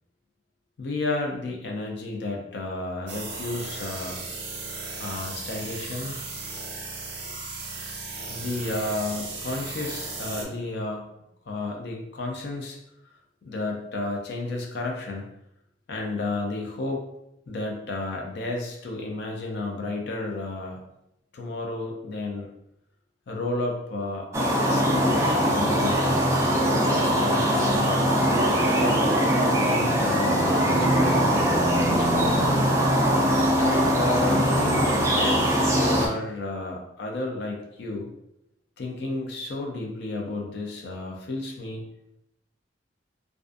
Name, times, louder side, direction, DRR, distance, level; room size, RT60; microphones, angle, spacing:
voice 1, 0.8-4.2 5.0-6.2 8.3-11.1 11.5-12.8 13.4-15.3 15.9-17.0 17.5-20.8 21.3-22.5 23.3-26.0 26.8-28.4 28.7-32.8 33.5-38.1 38.8-41.8, left 2 dB, 65° left, 1 dB, 0.4 m, -32 dB
sound 1, 3.1-10.4, right 3 dB, 65° right, 0.6 m, -36 dB
sound 2, 24.3-36.1, equal, 15° right, 0.3 m, -22 dB
2.4 x 2.3 x 2.4 m, 0.83 s
head